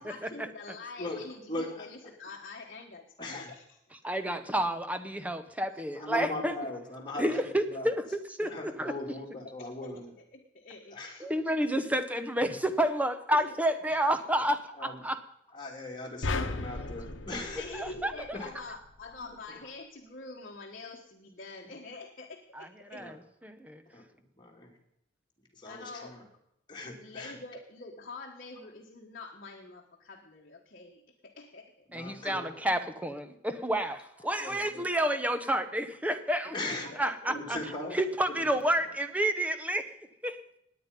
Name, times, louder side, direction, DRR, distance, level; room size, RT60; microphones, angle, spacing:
voice 1, 0.0-3.8 9.8-9.9 10.3-11.3 13.3-13.5 17.6-23.1 25.6-26.2 27.0-31.7 36.7-37.4, left 3 dB, 50° left, 0 dB, 1.3 m, -46 dB
voice 2, 1.0-1.9 3.2-3.5 4.0-4.2 6.0-7.9 8.4-10.1 10.9-11.2 14.4-15.1 15.5-17.7 18.3-18.5 19.2-19.7 22.9-23.2 23.9-24.8 25.5-26.2 26.7-27.4 31.9-32.6 34.2-34.9 36.4-36.9 37.3-38.0 38.3-38.8, left 2 dB, 25° left, 0 dB, 2.8 m, -40 dB
voice 3, 4.0-6.5 7.2-7.9 8.4-8.9 11.2-15.2 17.7-18.1 22.6-23.1 23.4-23.8 31.9-36.5 37.0-37.6 38.0-40.0 40.2-40.4, right 1 dB, 10° right, 9 dB, 0.9 m, -30 dB
sound 1, 16.2-18.6, left 3 dB, 80° left, 1.0 m, -35 dB
18.5 x 9.4 x 5.4 m, 0.79 s
head